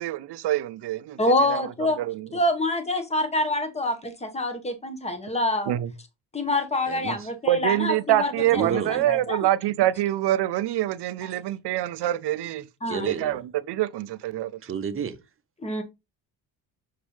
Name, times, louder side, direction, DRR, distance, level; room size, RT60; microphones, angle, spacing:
voice 1, 0.0-1.2 1.5-1.6 2.0-2.3 5.7-5.9 7.5-12.7 13.1-13.4 13.7-14.5, right 13 dB, 70° right, 0.7 m, -25 dB
voice 2, 1.2-2.0 2.3-5.7 6.3-8.7 9.1-9.5 12.8-13.2 15.6-15.8, left 1 dB, 15° left, 1.3 m, -26 dB
voice 3, 6.9-7.3 8.5-9.2 12.9-13.4 14.6-15.2, right 7 dB, 30° right, 0.9 m, -31 dB
6.7 x 5.1 x 3.2 m
cardioid pair, 130°, 42 cm